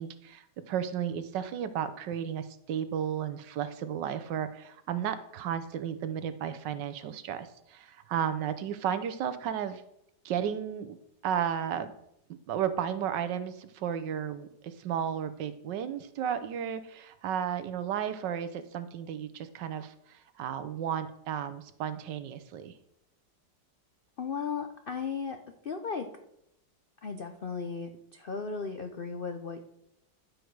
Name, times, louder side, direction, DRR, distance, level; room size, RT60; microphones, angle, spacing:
voice 1, 0.0-9.8 10.2-11.0 11.2-11.9 12.5-22.7, right 9 dB, 75° right, 12 dB, 1.4 m, -33 dB
voice 2, 24.2-25.4 25.6-26.1 27.0-29.6, left 5 dB, 85° left, 6 dB, 0.4 m, -35 dB
11.5 x 6.5 x 4.7 m, 0.80 s
omnidirectional pair, 2.0 m